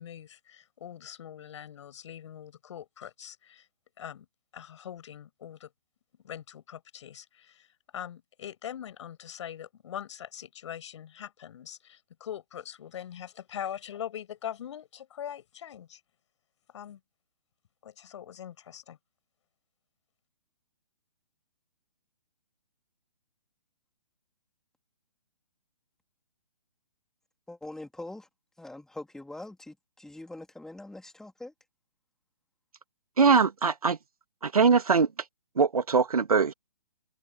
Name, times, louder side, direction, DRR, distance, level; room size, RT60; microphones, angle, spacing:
voice 1, 0.0-3.7 4.0-4.3 4.5-5.7 6.2-7.7 7.9-16.0 16.7-17.0 17.8-19.0, left 9 dB, 50° left, 7.1 m, -42 dB
voice 2, 27.5-28.3 28.6-31.5, left 2 dB, ahead, 3.9 m, -43 dB
voice 3, 33.2-34.0 34.4-35.1 35.6-36.5, right 5 dB, 65° right, 2.1 m, -22 dB
figure-of-eight pair, 130°, 20 cm